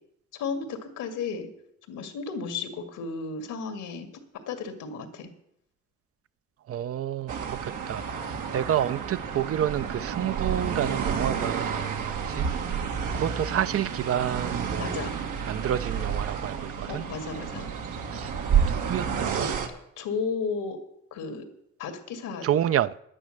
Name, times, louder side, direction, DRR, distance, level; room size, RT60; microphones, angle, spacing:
voice 1, 0.3-1.5 1.9-4.1 4.5-5.3 14.8-15.2 16.9-17.7 20.0-20.8 21.1-21.5 21.8-22.5, left 5 dB, 85° left, 2.1 m, -33 dB
voice 2, 6.7-12.5 13.1-15.1 15.5-17.0 18.1-18.3 18.7-19.6 22.4-22.9, right 10 dB, 50° right, 0.5 m, -29 dB
sound 1, 7.3-19.7, right 7 dB, 85° right, 1.8 m, -30 dB
10.5 x 9.9 x 6.5 m
cardioid pair, 90°, 30 cm